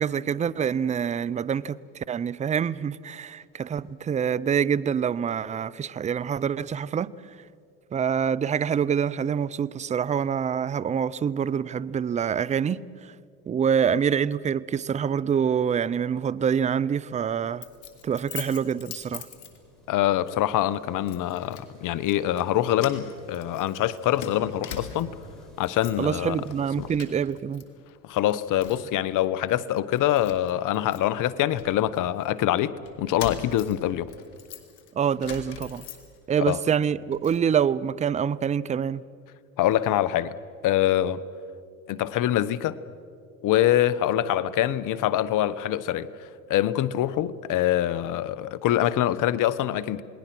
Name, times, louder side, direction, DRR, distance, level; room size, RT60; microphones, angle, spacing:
voice 1, 0.0-7.1 7.9-13.1 13.5-17.6 18.0-19.3 26.0-27.6 34.9-35.8 36.3-39.0, right 7 dB, 20° right, 0.5 m, -26 dB
sound 1, 16.3-26.9, equal, ahead, 6.1 m, -52 dB
Keys jangling, 17.6-19.9 20.3-20.5 21.1-21.7 22.0-22.5 22.8-25.2 25.6-26.1 26.4-27.6 27.9-29.0 29.5-29.6 29.9-32.3 32.8-36.4 36.8-37.4, left 8 dB, 70° left, 2.9 m, -42 dB
voice 2, 19.9-25.2 25.6-26.4 26.8-26.9 28.0-34.1 36.4-36.6 39.6-40.4 40.6-41.2 41.9-42.8 43.4-50.0, left 12 dB, 50° left, 1.0 m, -24 dB
28.5 x 20.0 x 6.1 m
hypercardioid pair, 90°, 41 cm